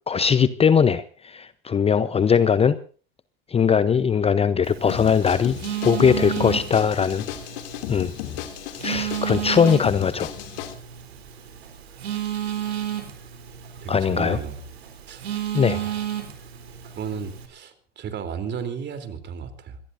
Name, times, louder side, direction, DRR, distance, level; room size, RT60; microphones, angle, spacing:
voice 1, 0.1-2.8 3.5-5.6 5.8-7.2 7.9-8.1 8.8-10.3 13.9-14.4 15.5-15.8, left 7 dB, 20° left, 14 dB, 0.8 m, -20 dB
Telephone, 4.6-17.5, right 11 dB, 85° right, 3.7 m, -33 dB
sound 1, 4.9-10.7, left 12 dB, 65° left, 2.7 m, -34 dB
voice 2, 13.8-14.6 15.1-15.2 15.7-16.0 16.8-19.8, right 7 dB, 35° right, 9 dB, 3.5 m, -33 dB
26.0 x 18.5 x 2.6 m, 0.39 s
hypercardioid pair, 95°, 31 cm